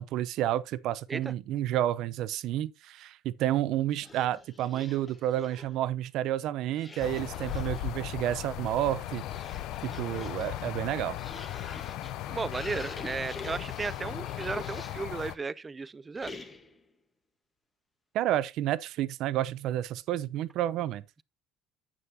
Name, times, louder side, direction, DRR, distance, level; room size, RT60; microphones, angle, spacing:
voice 1, 0.0-9.2 9.8-11.2 18.1-21.0, right 12 dB, 60° right, 0.6 m, -30 dB
sound 1, 3.9-5.8 6.7-7.9 8.7-15.2 16.1-16.8, left 2 dB, 20° left, 1.2 m, -46 dB
sound 2, 7.0-15.3, left 13 dB, 65° left, 0.6 m, -37 dB
voice 2, 12.3-16.3, right 4 dB, 20° right, 0.4 m, -35 dB
9.6 x 7.7 x 2.7 m
cardioid pair, 130°, 0 cm